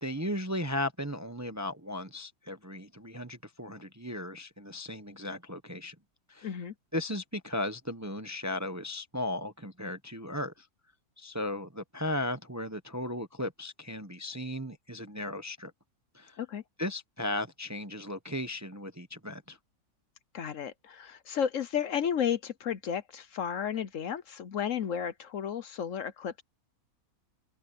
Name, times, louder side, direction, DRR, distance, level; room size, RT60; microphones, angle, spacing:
voice 1, 0.0-5.9 6.3-6.5 6.9-10.5 11.2-15.7 16.1-16.4 16.8-19.6, left 1 dB, 15° right, 0.8 m, -36 dB
voice 2, 6.4-6.7 16.4-16.6 20.3-26.4, left 8 dB, 60° left, 1.1 m, -33 dB
open air
omnidirectional pair, 1.6 m